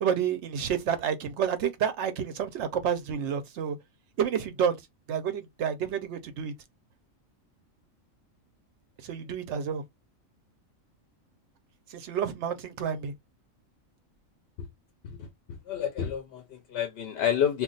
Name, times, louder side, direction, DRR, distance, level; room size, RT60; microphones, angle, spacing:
voice 1, 0.0-3.8 4.2-4.8 5.1-6.5 9.0-9.8 11.9-13.1, right 8 dB, 65° right, 0.8 m, -29 dB
voice 2, 15.7-17.6, left 9 dB, 60° left, 0.7 m, -29 dB
2.4 x 2.3 x 3.7 m
omnidirectional pair, 1.4 m